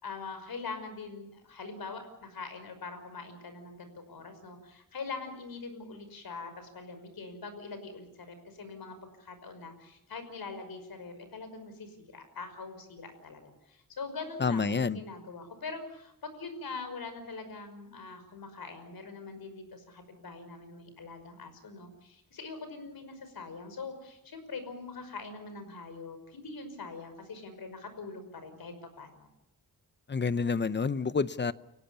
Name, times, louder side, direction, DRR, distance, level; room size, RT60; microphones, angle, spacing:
voice 1, 0.0-29.3, left 4 dB, 70° left, 9 dB, 5.7 m, -43 dB
voice 2, 14.4-15.0 30.1-31.5, left 5 dB, 30° left, 15 dB, 0.8 m, -28 dB
29.5 x 17.5 x 7.0 m, 0.83 s
wide cardioid pair, 120°, 37 cm